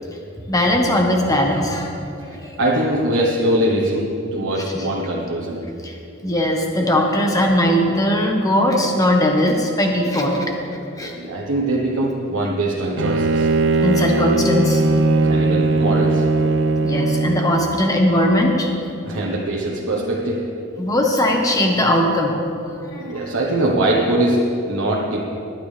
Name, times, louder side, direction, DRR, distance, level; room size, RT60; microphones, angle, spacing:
voice 1, 0.5-2.6 5.6-6.0 6.2-11.2 13.8-14.8 16.8-18.7 20.8-23.3, left 1 dB, 15° left, 1 dB, 1.2 m, -19 dB
voice 2, 2.2-5.7 11.1-13.5 15.2-16.3 19.1-20.4 23.0-25.2, right 1 dB, 85° right, -3 dB, 1.2 m, -22 dB
Bowed string instrument, 13.0-17.7, right 2 dB, 60° right, 0.6 m, -19 dB
21.0 x 9.2 x 3.4 m, 2.7 s
head